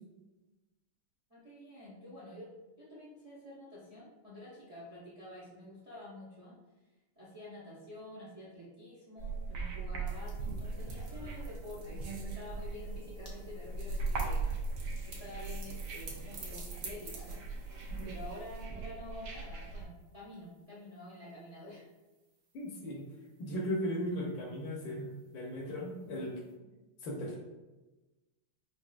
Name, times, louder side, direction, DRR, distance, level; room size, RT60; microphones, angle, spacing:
voice 1, 1.3-2.5 2.8-6.6 7.2-14.6 15.0-17.4 18.0-21.8, left 1 dB, 35° right, -7 dB, 0.5 m, -49 dB
sound 1, 9.2-19.9, right 3 dB, 75° right, 1.5 m, -39 dB
sound 2, 10.1-18.6, right 3 dB, 55° right, 1.2 m, -51 dB
voice 2, 22.5-23.0 23.4-25.1 25.3-26.4 27.0-27.4, equal, 70° left, -1 dB, 1.3 m, -36 dB
6.0 x 2.6 x 2.3 m, 1.1 s
omnidirectional pair, 2.4 m